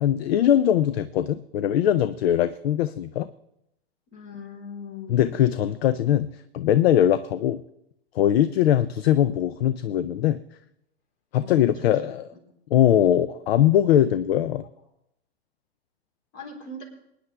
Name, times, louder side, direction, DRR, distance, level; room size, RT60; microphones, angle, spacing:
voice 1, 0.0-3.3 5.1-7.6 8.2-10.4 11.3-12.2 12.7-14.6, left 11 dB, 70° left, 14 dB, 0.6 m, -21 dB
voice 2, 4.1-5.4 11.4-12.2 12.5-12.6 16.3-16.8, left 3 dB, 55° left, 0 dB, 4.0 m, -41 dB
23.5 x 9.9 x 3.4 m, 0.80 s
hypercardioid pair, 110°, 32 cm